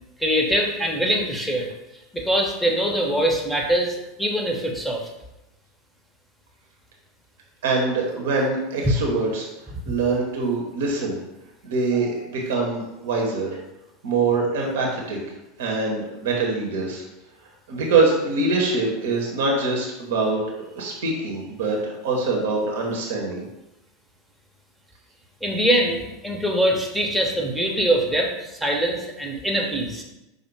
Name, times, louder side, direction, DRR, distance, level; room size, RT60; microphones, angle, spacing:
voice 1, 0.2-1.7 2.1-5.1 8.8-8.9 25.4-30.0, right 1 dB, ahead, 0 dB, 0.8 m, -23 dB
voice 2, 7.6-9.5 9.9-11.2 11.6-13.5 14.0-15.2 15.6-17.0 17.7-23.5, right 3 dB, 60° right, -1 dB, 0.9 m, -24 dB
5.3 x 2.1 x 4.7 m, 0.94 s
figure-of-eight pair, 80°, 0 cm